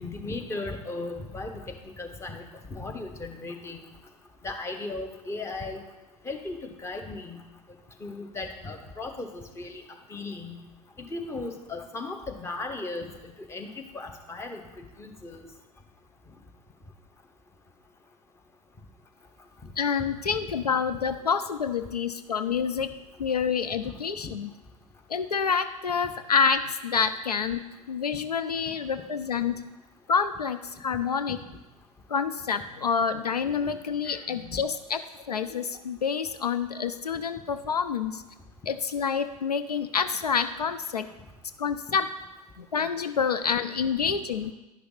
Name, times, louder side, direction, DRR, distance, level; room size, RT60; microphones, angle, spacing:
voice 1, 0.0-1.5 2.0-2.4 2.7-3.8 4.4-5.8 6.2-6.6 6.8-7.4 8.0-9.8 10.1-10.6 11.0-13.1 13.5-13.7 13.9-14.6 15.0-15.4 24.2-24.3 34.0-34.2 41.9-42.0 44.0-44.1, left 3 dB, 15° left, 4 dB, 1.0 m, -36 dB
voice 2, 19.8-22.9 23.2-24.5 25.1-29.5 30.1-31.4 32.1-35.0 35.3-38.2 38.7-41.1 41.6-42.1 42.6-44.5, left 6 dB, 85° left, 11 dB, 0.4 m, -27 dB
11.0 x 5.8 x 4.0 m, 1.1 s
figure-of-eight pair, 90°, 20 cm